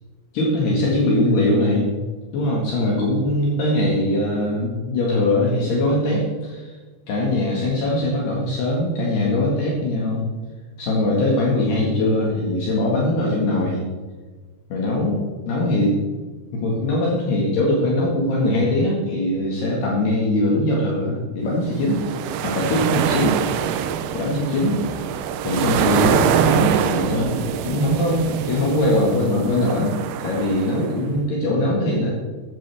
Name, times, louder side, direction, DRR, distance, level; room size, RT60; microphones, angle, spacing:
voice 1, 0.3-2.0 2.3-6.8 7.1-10.3 10.8-13.8 14.7-15.2 15.5-16.0 16.5-22.0 22.4-23.4 24.1-24.8 25.4-30.0 30.2-32.1, left 1 dB, 65° left, -3 dB, 3.6 m, -21 dB
sound 1, 21.7-31.0, right 8 dB, 80° right, 2.4 m, -24 dB
14.5 x 12.5 x 3.5 m, 1.4 s
omnidirectional pair, 5.5 m